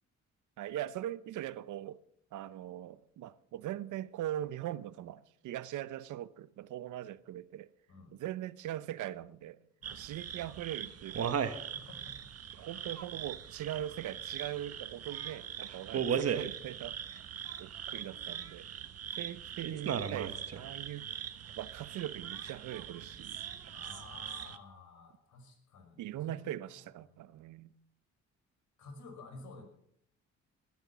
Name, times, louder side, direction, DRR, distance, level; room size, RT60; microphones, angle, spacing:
voice 1, 0.6-2.0 2.3-7.7 8.1-9.6 9.9-11.4 12.6-17.2 17.6-18.7 19.1-21.1 21.6-23.4 26.0-27.7, right 12 dB, 80° right, 0.8 m, -41 dB
voice 2, 9.8-10.1 11.7-12.2 12.6-12.8 17.9-18.1 18.6-18.7 23.7-26.5 28.8-29.6, left 3 dB, 75° left, 5.8 m, -52 dB
sound 1, 9.8-24.6, right 8 dB, 55° right, 1.3 m, -39 dB
20.5 x 11.0 x 6.1 m
cardioid pair, 90°, 30 cm